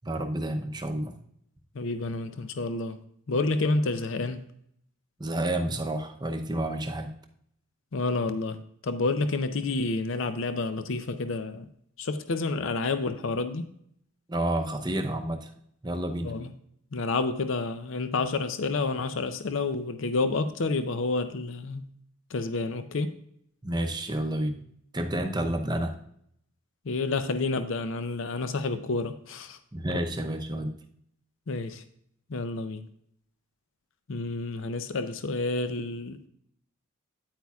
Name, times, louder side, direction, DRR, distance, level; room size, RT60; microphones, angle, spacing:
voice 1, 0.0-1.1 5.2-7.1 14.3-15.5 15.8-16.3 23.6-24.6 24.9-25.9 29.7-30.8, right 1 dB, 20° right, 5 dB, 0.6 m, -30 dB
voice 2, 1.8-3.0 3.3-4.4 7.9-8.6 8.8-11.7 12.0-13.7 16.2-16.5 16.9-21.8 22.3-23.1 26.9-29.6 31.5-31.8 32.3-32.8 34.1-36.3, left 3 dB, 60° left, 10 dB, 0.5 m, -29 dB
9.4 x 8.4 x 2.3 m, 0.69 s
head